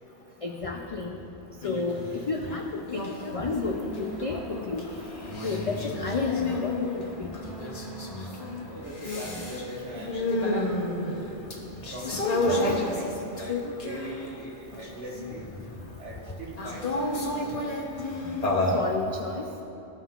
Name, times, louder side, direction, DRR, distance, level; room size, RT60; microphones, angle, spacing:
voice 1, 0.4-1.2 1.6-3.0 3.3-4.9 5.4-6.9 7.2-7.3 12.1-12.9 18.7-19.4, left 3 dB, 65° left, 2 dB, 0.3 m, -32 dB
sound 1, 1.6-2.1 2.4-14.3 14.7-15.7 16.6-18.9, left 2 dB, 40° left, 0.9 m, -31 dB
sound 2, 3.6-8.8, equal, ahead, 1.4 m, -48 dB
voice 2, 8.6-10.8 11.5-15.5 16.0-17.6, right 1 dB, 80° right, -3 dB, 1.6 m, -40 dB
14.5 x 5.5 x 2.4 m, 2.9 s
omnidirectional pair, 1.2 m